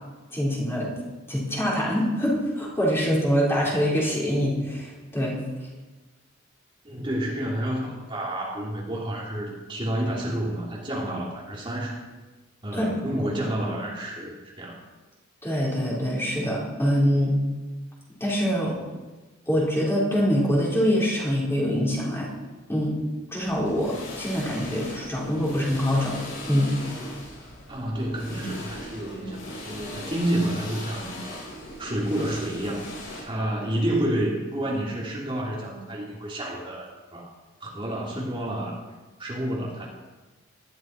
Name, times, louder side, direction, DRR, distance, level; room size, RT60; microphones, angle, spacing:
voice 1, 0.3-0.9 1.3-5.4 12.7-13.2 15.4-17.4 18.2-18.8 19.5-22.3 22.7-23.0 23.3-26.7, equal, 10° left, -5 dB, 4.6 m, -24 dB
voice 2, 6.8-12.0 12.6-14.8 27.7-31.4 31.8-32.9 33.2-37.3 37.6-38.8 39.2-39.9, right 1 dB, 25° right, -4 dB, 3.1 m, -29 dB
sound 1, 23.4-33.2, left 1 dB, 80° left, 7.1 m, -39 dB
20.0 x 14.0 x 4.6 m, 1.2 s
head